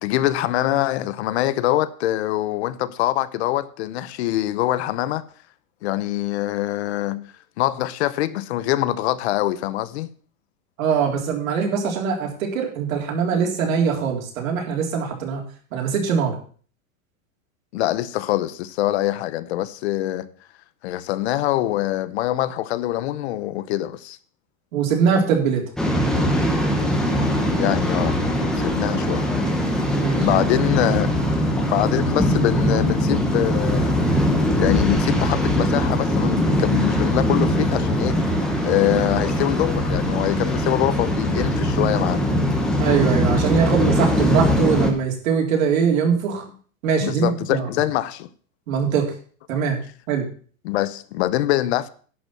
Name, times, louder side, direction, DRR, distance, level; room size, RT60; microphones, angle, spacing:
voice 1, 0.0-5.2 5.8-7.3 7.6-10.1 17.7-20.3 20.8-24.2 27.6-28.2 28.6-29.3 29.7-29.8 30.2-31.1 31.5-34.0 34.6-38.2 38.6-42.3 47.0-48.3 50.6-51.9, left 14 dB, 55° left, 0.8 m, -24 dB
voice 2, 10.8-15.4 15.7-16.3 24.7-25.6 29.9-30.3 42.8-46.4 46.8-47.7 48.7-49.1 49.5-49.8 50.1-50.3, right 6 dB, 80° right, 3.6 m, -22 dB
Waves surf, 25.8-44.9, equal, ahead, 0.9 m, -21 dB
11.0 x 5.4 x 7.3 m
supercardioid pair, 175°, 40 cm